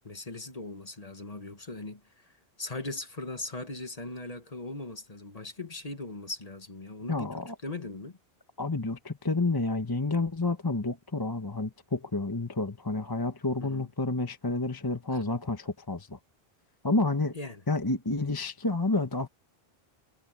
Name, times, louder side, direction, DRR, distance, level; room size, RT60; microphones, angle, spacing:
voice 1, 0.0-8.2 13.6-13.9 15.1-15.2 17.3-17.6, left 2 dB, 40° left, 1.6 m, -39 dB
voice 2, 7.1-7.5 8.6-16.2 16.8-17.3 17.7-19.3, left 2 dB, 20° left, 1.1 m, -29 dB
omnidirectional pair, 1.0 m